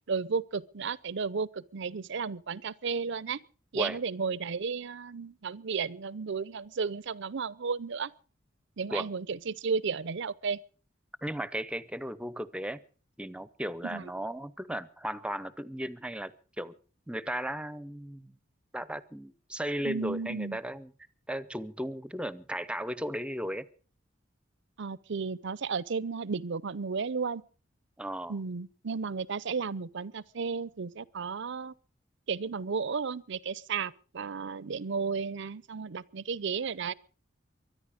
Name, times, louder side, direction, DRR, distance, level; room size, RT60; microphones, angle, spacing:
voice 1, 0.1-3.4 3.7-8.1 8.8-10.6 13.8-14.1 19.8-20.6 24.8-27.4 28.3-31.7 32.3-36.9, right 5 dB, 65° right, 0.6 m, -33 dB
voice 2, 11.2-12.8 13.2-16.7 17.1-18.3 18.7-20.9 21.3-23.7 28.0-28.3, right 1 dB, 5° right, 0.7 m, -36 dB
23.5 x 10.5 x 5.1 m
head